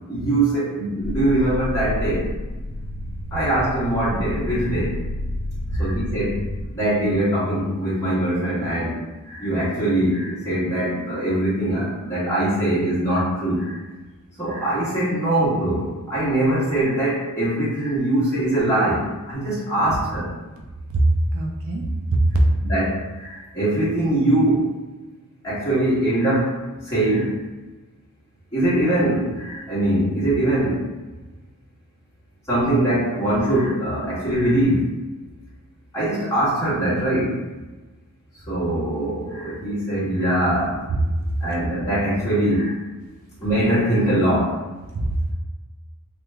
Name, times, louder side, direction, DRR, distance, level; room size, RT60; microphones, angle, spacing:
voice 1, 0.1-2.2 3.3-5.0 5.7-6.4 6.7-8.9 9.3-13.8 14.4-20.3 22.6-24.7 25.4-26.5 26.8-27.3 28.5-30.8 32.5-34.9 35.9-37.4 38.5-40.7 41.4-42.8 43.4-44.5, right 1 dB, 15° left, -11 dB, 1.4 m, -22 dB
sound 1, 1.0-6.7, left 1 dB, 75° left, 0.5 m, -30 dB
voice 2, 21.3-22.4 40.9-41.0 44.9-45.3, right 2 dB, 65° right, 1 dB, 0.5 m, -22 dB
2.9 x 2.4 x 3.3 m, 1.2 s
head